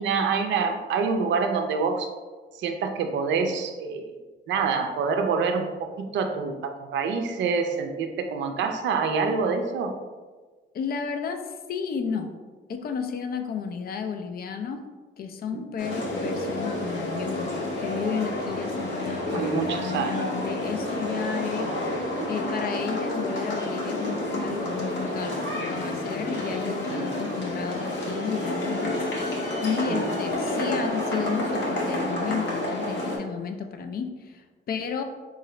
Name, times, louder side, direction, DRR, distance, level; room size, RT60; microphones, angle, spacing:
voice 1, 0.0-2.1 2.6-4.1 4.5-9.9 15.5-15.6 19.3-20.1 20.8-20.9 22.2-22.3 26.9-27.1 29.9-30.1, right 5 dB, 65° right, 6 dB, 0.5 m, -26 dB
voice 2, 10.7-12.3 12.7-14.8 15.2-35.0, left 6 dB, 50° left, 6 dB, 0.4 m, -33 dB
sound 1, 15.8-33.2, left 1 dB, 70° left, 1.1 m, -29 dB
3.8 x 2.5 x 3.1 m, 1.4 s
cardioid pair, 90°, 20 cm